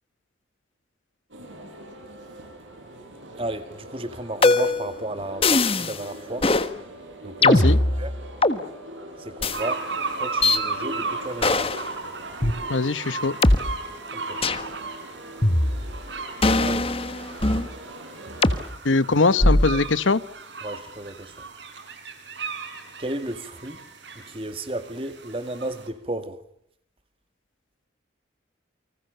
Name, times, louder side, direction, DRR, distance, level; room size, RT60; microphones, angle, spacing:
sound 1, 1.3-18.6, right 1 dB, 90° right, 7.8 m, -42 dB
voice 1, 3.4-6.5 7.2-7.6 8.0-8.1 9.2-9.8 10.2-11.7 14.1-14.4 16.6-16.9 18.9-19.0 19.7-19.8 20.6-21.3 23.0-23.8 24.2-26.4, right 1 dB, 30° right, 2.1 m, -33 dB
sound 2, 4.4-4.9 5.4-6.0 6.4-6.7 7.4-8.6 9.4-9.6 10.4-10.6 11.4-11.8 12.4-12.5 13.4-13.6 14.4-14.7 15.4-16.0 16.4-17.7 18.4-18.6 19.4-19.8, left 2 dB, 30° left, 1.4 m, -20 dB
voice 2, 7.4-7.8 12.7-13.4 18.8-20.2, left 3 dB, 90° left, 1.1 m, -21 dB
sound 3, 9.5-25.9, right 4 dB, 70° right, 5.2 m, -36 dB
29.5 x 25.0 x 6.9 m
head